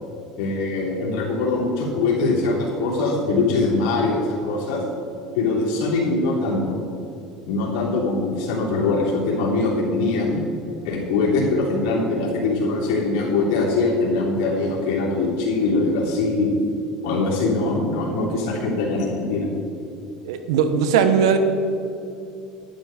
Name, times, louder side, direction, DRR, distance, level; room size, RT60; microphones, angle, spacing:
voice 1, 0.4-4.8 5.3-6.8 7.4-10.4 10.8-16.5 17.0-19.5, left 3 dB, 75° left, -4 dB, 3.3 m, -22 dB
voice 2, 20.2-21.4, right 7 dB, 85° right, 9 dB, 1.1 m, -19 dB
10.5 x 10.5 x 5.2 m, 2.7 s
supercardioid pair, 100°, 3 cm